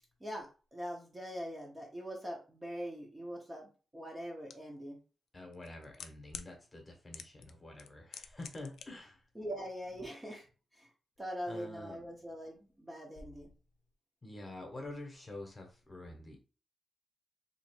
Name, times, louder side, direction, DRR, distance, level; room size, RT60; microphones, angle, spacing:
voice 1, 0.2-5.0 9.4-10.5 10.8-10.9 11.2-13.5, equal, 15° right, -1 dB, 0.9 m, -42 dB
sound 1, 4.5-4.6 5.5-6.5 7.1-7.5 7.8-8.8 9.1-9.2, left 7 dB, 80° left, 0.4 m, -45 dB
voice 2, 5.3-9.2 11.5-12.0 14.2-16.4, left 2 dB, 20° left, 2 dB, 1.1 m, -47 dB
2.9 x 2.6 x 4.4 m, 0.34 s
wide cardioid pair, 125°, 0 cm